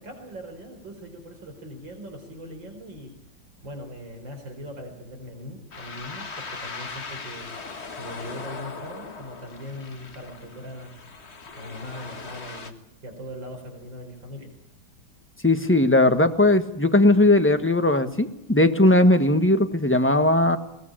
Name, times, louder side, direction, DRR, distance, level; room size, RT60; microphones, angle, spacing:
voice 1, 0.0-3.2 3.6-7.5 8.0-11.0 11.6-12.8 13.0-14.5, equal, 65° right, 4 dB, 5.0 m, -40 dB
sound 1, 5.7-12.7, left 4 dB, 35° left, 1.7 m, -39 dB
voice 2, 15.4-20.6, left 1 dB, 5° left, 8 dB, 1.1 m, -18 dB
22.0 x 19.0 x 8.9 m, 0.82 s
omnidirectional pair, 2.2 m